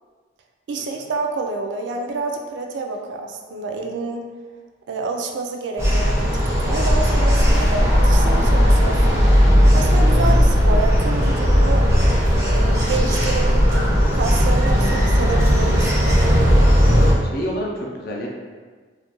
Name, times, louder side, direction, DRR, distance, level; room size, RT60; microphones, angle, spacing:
voice 1, 0.7-4.3 4.9-9.2 9.7-11.9 12.5-16.2, right 3 dB, 70° right, 2 dB, 0.3 m, -28 dB
sound 1, 5.8-17.1, equal, 15° right, 0.5 m, -16 dB
voice 2, 17.2-18.3, equal, 55° left, -1 dB, 0.4 m, -29 dB
2.3 x 2.1 x 2.9 m, 1.5 s
head